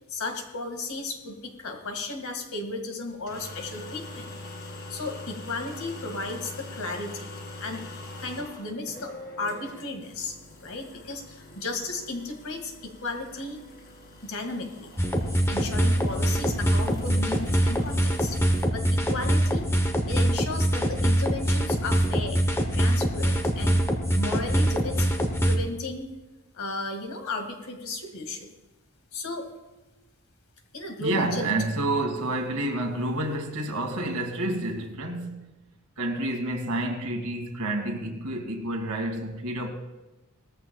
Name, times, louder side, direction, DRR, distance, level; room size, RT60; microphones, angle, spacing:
voice 1, 0.1-4.4 4.9-7.3 7.6-7.8 8.2-13.6 14.2-14.9 15.5-18.4 18.7-19.7 20.1-22.4 22.7-23.8 24.2-26.1 26.5-28.5 29.1-29.5 30.7-31.6, left 2 dB, 75° left, 1.9 m, -34 dB
sound 1, 3.1-18.7, left 2 dB, 45° left, 2.0 m, -44 dB
sound 2, 15.0-25.6, equal, 10° left, 0.9 m, -24 dB
voice 2, 31.0-35.5 36.0-39.7, right 1 dB, 80° right, 2.0 m, -29 dB
18.5 x 14.0 x 2.3 m
head